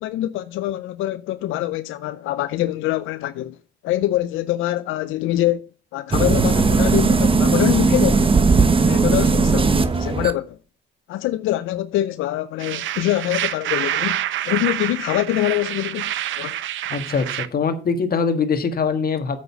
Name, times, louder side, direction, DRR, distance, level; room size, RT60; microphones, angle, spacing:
voice 1, 0.0-3.6 3.8-5.7 5.9-8.4 8.8-10.6 11.1-16.6, left 14 dB, 90° left, 0.5 m, -24 dB
sound 1, 6.1-10.3, right 4 dB, 25° right, 1.1 m, -17 dB
sound 2, 12.6-17.5, right 12 dB, 75° right, 0.7 m, -27 dB
voice 2, 16.9-19.4, left 5 dB, 50° left, 1.7 m, -22 dB
8.2 x 6.4 x 5.9 m
cardioid pair, 90°, 20 cm